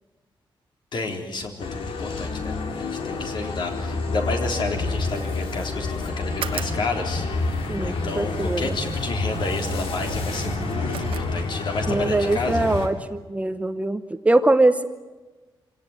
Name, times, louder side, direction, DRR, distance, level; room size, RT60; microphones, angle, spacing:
voice 1, 0.9-12.7, left 3 dB, 60° left, 3 dB, 3.8 m, -31 dB
sound 1, 1.6-12.9, left 3 dB, 90° left, 3.0 m, -28 dB
sound 2, 6.2-11.9, right 8 dB, 80° right, 1.1 m, -37 dB
voice 2, 7.7-8.7 11.9-14.0 14.2-14.8, right 2 dB, 15° right, 10 dB, 0.9 m, -22 dB
25.5 x 17.5 x 9.1 m, 1.2 s
wide cardioid pair, 145°, 9 cm